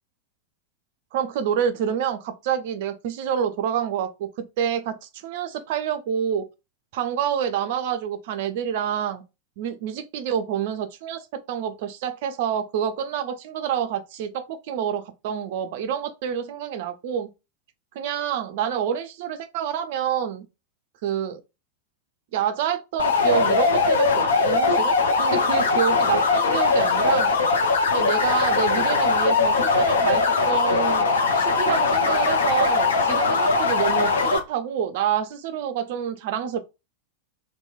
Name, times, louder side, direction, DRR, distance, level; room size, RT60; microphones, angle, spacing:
voice 1, 1.1-6.5 6.9-9.2 9.6-17.3 17.9-20.5 21.0-21.4 22.3-27.3 27.9-31.1 31.3-36.6, right 8 dB, 50° right, 0.4 m, -27 dB
sound 1, 23.0-34.4, left 4 dB, 65° left, 0.5 m, -20 dB
2.9 x 2.2 x 2.3 m
figure-of-eight pair, 90°, 0 cm